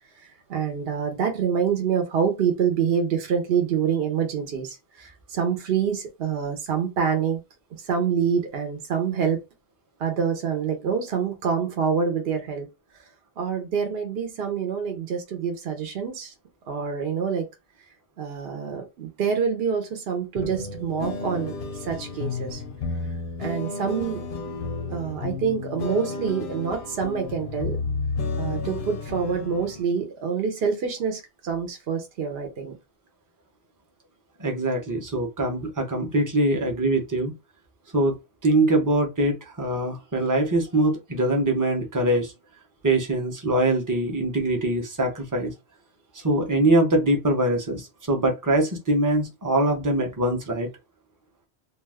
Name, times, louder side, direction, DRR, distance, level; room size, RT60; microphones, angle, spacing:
voice 1, 0.5-7.4 7.9-9.4 10.0-12.7 13.4-16.3 16.7-17.4 18.2-21.5 21.8-22.6 23.4-24.5 24.9-27.8 28.4-32.8, right 7 dB, 65° right, 0.9 m, -26 dB
sound 1, 20.4-29.8, left 4 dB, 60° left, 0.6 m, -32 dB
voice 2, 34.4-37.3 37.9-38.1 38.4-42.3 42.8-45.5 46.2-50.7, right 1 dB, 20° right, 0.6 m, -23 dB
2.4 x 2.3 x 3.3 m
omnidirectional pair, 1.1 m